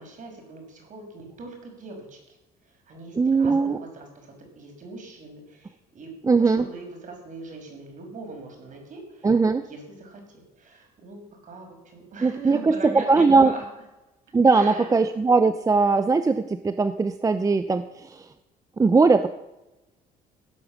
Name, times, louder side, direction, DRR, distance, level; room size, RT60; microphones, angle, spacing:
voice 1, 0.0-2.4 2.6-6.1 6.4-9.3 9.6-13.6 14.5-15.0, right 3 dB, 50° right, 2 dB, 6.0 m, -41 dB
voice 2, 3.2-3.8 6.2-6.7 9.2-9.7 12.2-13.5 14.3-18.3 18.8-19.3, right 4 dB, 20° right, 11 dB, 0.7 m, -20 dB
16.5 x 8.8 x 7.4 m, 0.99 s
cardioid pair, 110°, 17 cm